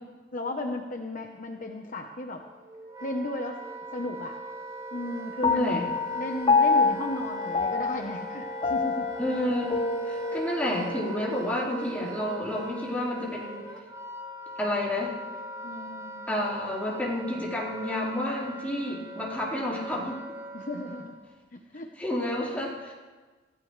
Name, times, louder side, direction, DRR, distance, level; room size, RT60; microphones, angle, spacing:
voice 1, 0.3-2.4 3.0-3.6 3.9-4.4 4.9-5.8 6.1-9.1 12.3-12.4 15.6-16.3 20.5-21.2 21.5-21.9, left 2 dB, 45° left, 3 dB, 1.1 m, -35 dB
Wind instrument woodwind instrument, 2.4-21.2, right 1 dB, 20° right, 2.0 m, -40 dB
Piano, 5.4-12.1, left 4 dB, 30° left, 0.5 m, -28 dB
voice 2, 5.4-5.8 9.2-9.8 10.0-13.6 14.6-15.1 16.3-20.2 22.0-22.9, left 1 dB, 10° left, -5 dB, 4.4 m, -30 dB
27.5 x 15.5 x 3.3 m, 1.3 s
head